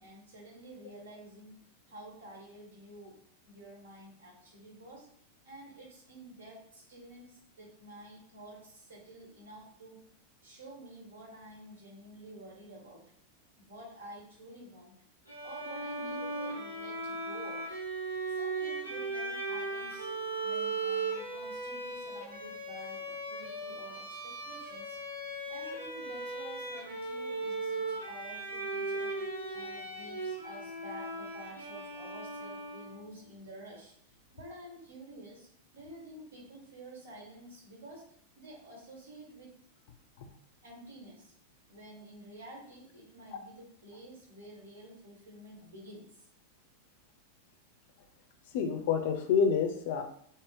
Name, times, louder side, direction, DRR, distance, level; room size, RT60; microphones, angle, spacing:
voice 1, 0.0-1.5 1.9-3.1 3.4-5.1 5.4-10.0 10.4-13.0 13.6-14.9 15.4-17.6 18.3-20.1 20.4-25.0 25.5-29.2 29.5-35.5 35.7-38.0 38.4-39.5 40.6-41.3 41.7-46.3, right 1 dB, 65° right, -2 dB, 1.4 m, -50 dB
Bowed string instrument, 15.3-33.1, right 2 dB, 80° right, 0.9 m, -37 dB
voice 2, 48.5-50.0, left 6 dB, 50° left, 6 dB, 0.4 m, -28 dB
3.6 x 2.1 x 3.4 m, 0.64 s
figure-of-eight pair, 90°, 0 cm